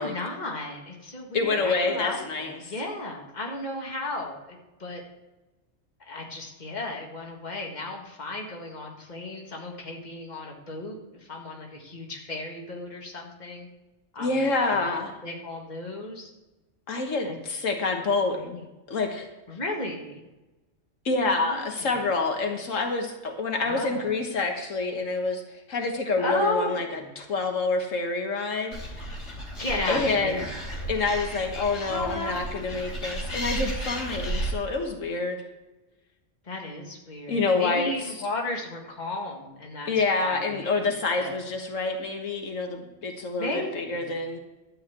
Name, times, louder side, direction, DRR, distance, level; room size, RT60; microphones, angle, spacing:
voice 1, 0.0-5.0 6.1-13.7 14.1-14.8 15.2-16.3 17.2-17.4 18.4-18.6 19.5-20.2 21.4-21.9 23.6-24.1 26.2-27.1 29.6-30.5 31.9-32.7 36.5-40.5 40.8-41.3 43.4-44.2, left 2 dB, 35° left, 0 dB, 1.8 m, -34 dB
voice 2, 1.3-2.7 14.2-15.1 16.9-18.5 18.9-19.3 21.0-29.1 29.9-30.4 30.9-35.4 37.3-38.1 39.9-44.4, left 3 dB, 85° left, 3 dB, 1.7 m, -27 dB
Animal, 28.7-34.5, right 1 dB, 65° left, 3.1 m, -33 dB
12.5 x 4.8 x 8.1 m, 1.1 s
omnidirectional pair, 1.3 m